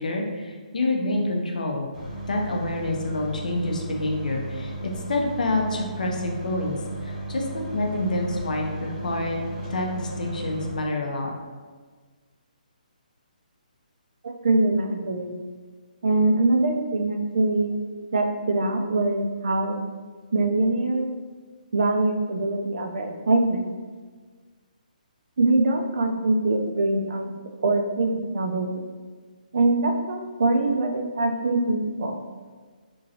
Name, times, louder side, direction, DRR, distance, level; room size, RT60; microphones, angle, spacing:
voice 1, 0.0-1.9 2.3-6.8 7.0-9.4 9.7-11.3, left 2 dB, 60° left, 1 dB, 0.5 m, -27 dB
sound 1, 1.9-10.7, right 2 dB, 10° left, 0.7 m, -35 dB
voice 2, 14.2-15.3 16.0-17.7 18.1-19.8 20.3-21.1 21.7-23.6 25.4-27.3 27.6-28.8 29.5-32.2, right 2 dB, 50° right, 3 dB, 0.3 m, -23 dB
3.0 x 2.5 x 2.7 m, 1.4 s
hypercardioid pair, 175°, 5 cm